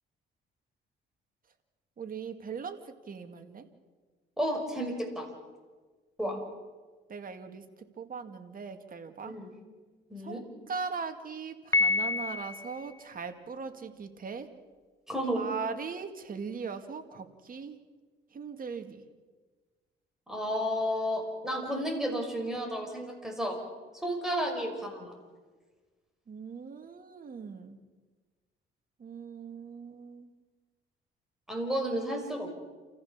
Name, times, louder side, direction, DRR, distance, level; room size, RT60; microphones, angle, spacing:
voice 1, 2.0-3.7 6.2-6.4 7.1-9.4 10.2-14.5 15.3-17.8 18.3-19.0 26.3-27.8 29.0-30.3, right 5 dB, 45° right, 7 dB, 2.2 m, -40 dB
voice 2, 4.4-5.3 6.2-6.4 9.2-9.5 10.1-10.4 15.1-15.5 20.3-23.6 23.9-25.1 31.5-32.5, equal, ahead, 2 dB, 5.9 m, -32 dB
Piano, 11.7-12.9, left 3 dB, 15° left, 0.8 m, -28 dB
28.5 x 15.0 x 7.3 m, 1.4 s
cardioid pair, 90°, 20 cm